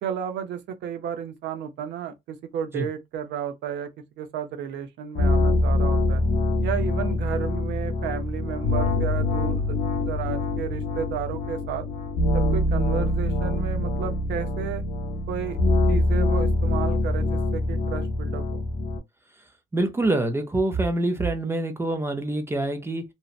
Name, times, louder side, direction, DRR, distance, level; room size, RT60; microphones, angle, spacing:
voice 1, 0.0-3.9 4.2-6.2 6.6-9.8 10.0-11.8 12.3-14.8 15.3-15.6 15.9-18.6, right 8 dB, 80° right, 0.6 m, -32 dB
sound 1, 5.1-19.0, left 2 dB, 55° left, 0.6 m, -24 dB
voice 2, 19.7-23.0, right 2 dB, 15° right, 0.4 m, -25 dB
2.7 x 2.0 x 2.3 m
cardioid pair, 160°, 18 cm